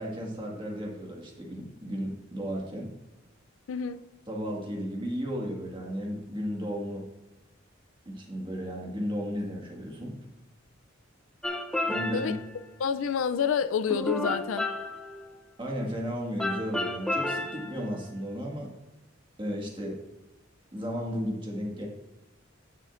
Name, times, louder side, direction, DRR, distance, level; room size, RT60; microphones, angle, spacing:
voice 1, 0.0-2.9 4.3-7.1 8.1-10.2 11.9-12.3 15.6-18.7 19.4-20.0 20.7-21.9, equal, 25° right, 1.8 m, -34 dB
voice 2, 3.7-4.0 12.1-12.3 12.8-14.7, left 7 dB, 90° left, 0.4 m, -28 dB
sound 1, 11.4-12.5 13.9-15.4 16.4-17.9, left 1 dB, 5° left, 0.6 m, -32 dB
15.5 x 6.6 x 2.5 m
head